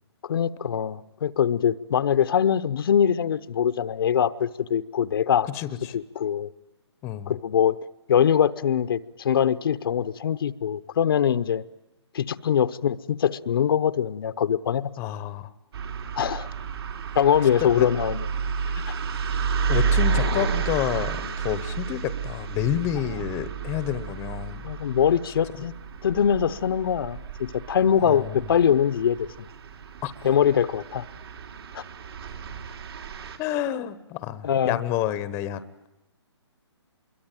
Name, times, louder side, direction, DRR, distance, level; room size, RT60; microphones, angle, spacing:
voice 1, 0.2-5.5 5.9-6.5 7.3-7.8 8.1-11.6 12.1-14.9 16.2-16.5 17.1-18.2 18.9-19.0 24.6-25.7 26.0-29.5 30.2-31.0 31.7-31.8 34.4-34.8, left 8 dB, 55° left, 0.9 m, -23 dB
voice 2, 15.0-15.5 17.6-17.9 19.7-24.6 28.0-28.4 30.0-30.1 33.4-35.9, left 12 dB, 15° left, 1.0 m, -29 dB
sound 1, 15.7-33.4, right 5 dB, 60° right, 3.8 m, -31 dB
25.5 x 22.5 x 9.1 m
hypercardioid pair, 155°, 15 cm